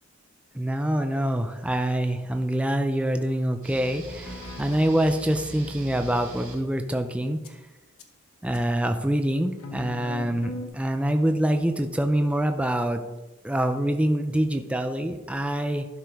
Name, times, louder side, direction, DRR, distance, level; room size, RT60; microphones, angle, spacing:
voice 1, 0.5-7.4 8.4-13.0 13.4-15.9, right 1 dB, 5° right, 6 dB, 0.4 m, -25 dB
sound 1, 3.6-6.5, right 1 dB, 40° right, 2.5 m, -41 dB
sound 2, 4.2-5.2 7.4-7.5 8.0-8.1 8.5-8.6 9.6-10.7, left 2 dB, 85° left, 1.0 m, -39 dB
11.5 x 4.9 x 4.6 m, 1.1 s
head